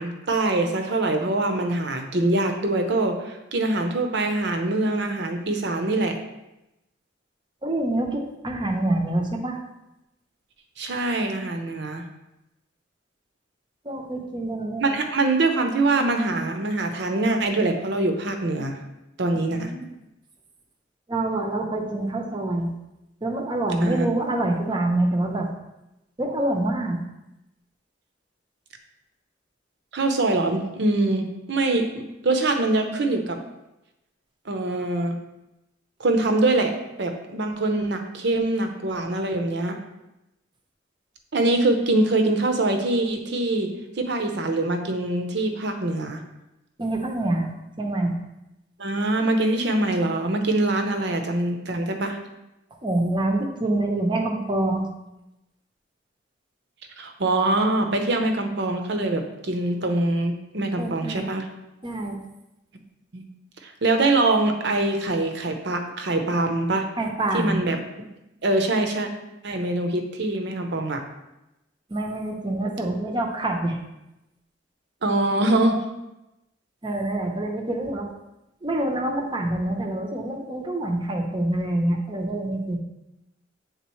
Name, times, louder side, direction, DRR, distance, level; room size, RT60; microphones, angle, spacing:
voice 1, 0.0-6.2 10.8-12.1 14.8-18.8 19.2-19.7 23.8-24.1 29.9-33.4 34.5-35.2 36.0-39.8 41.3-43.7 44.0-46.2 48.8-52.2 57.0-61.5 63.1-63.2 63.6-66.9 67.3-67.8 68.4-69.1 69.4-71.0 75.0-75.8, right 2 dB, 60° right, 5 dB, 0.7 m, -24 dB
voice 2, 7.6-9.6 13.8-15.0 19.3-19.8 21.1-22.7 23.2-25.5 26.2-27.0 46.8-47.5 47.8-48.1 52.8-54.9 60.8-61.3 61.8-62.2 67.0-67.6 71.9-73.8 76.8-78.1 78.6-82.8, right 1 dB, 25° right, 2 dB, 0.7 m, -26 dB
8.2 x 3.8 x 3.1 m, 0.93 s
head